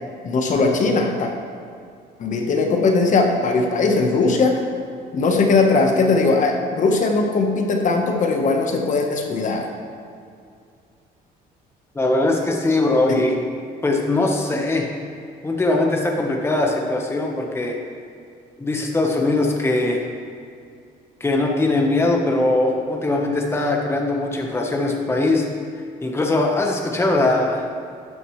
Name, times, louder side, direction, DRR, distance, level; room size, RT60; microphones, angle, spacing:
voice 1, 0.2-1.3 2.2-4.6 5.1-9.7 13.1-13.2, left 3 dB, 50° left, 3 dB, 1.3 m, -19 dB
voice 2, 11.9-13.4 13.8-14.9 15.4-17.7 18.6-20.1 21.2-25.5 26.0-27.7, left 2 dB, 15° left, 1 dB, 1.2 m, -21 dB
12.5 x 9.0 x 3.2 m, 2.3 s
cardioid pair, 110°, 17 cm